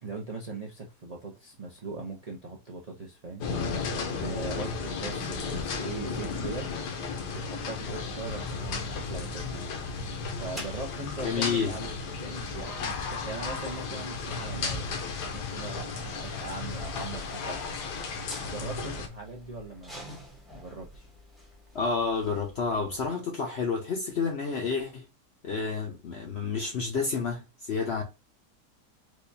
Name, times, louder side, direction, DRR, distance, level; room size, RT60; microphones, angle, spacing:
voice 1, 0.0-3.5 4.1-6.7 7.3-9.7 10.4-14.9 15.3-17.8 18.4-20.1 20.5-21.1, right 3 dB, 70° right, 0.3 m, -40 dB
sound 1, 3.4-19.1, left 4 dB, 80° left, 1.3 m, -34 dB
sound 2, 8.2-23.1, equal, ahead, 0.6 m, -50 dB
voice 2, 11.2-11.7 21.7-25.1 25.4-28.0, left 5 dB, 60° left, 0.7 m, -30 dB
4.6 x 2.3 x 2.6 m
omnidirectional pair, 1.8 m